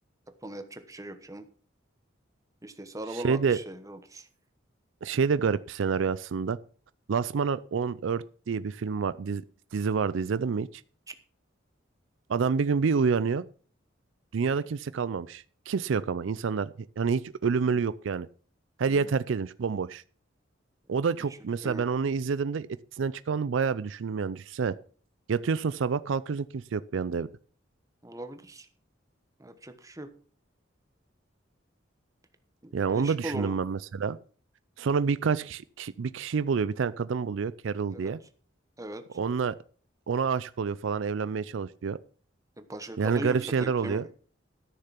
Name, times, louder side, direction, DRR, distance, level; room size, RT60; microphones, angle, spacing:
voice 1, 0.4-1.4 2.6-4.3 11.1-11.2 18.9-19.2 21.6-21.8 28.0-28.7 29.4-30.1 32.6-33.6 37.9-38.1 38.8-39.0 42.6-44.2, right 1 dB, 15° right, 9 dB, 1.1 m, -39 dB
voice 2, 3.1-3.6 5.0-6.6 7.1-9.4 9.7-10.7 12.3-13.4 14.3-18.3 18.8-20.0 20.9-22.7 23.0-24.7 25.3-27.3 32.7-34.2 34.8-38.2 39.1-39.5 40.1-42.0 43.0-44.0, right 5 dB, 75° right, 16 dB, 0.4 m, -28 dB
13.5 x 6.7 x 5.9 m, 0.43 s
head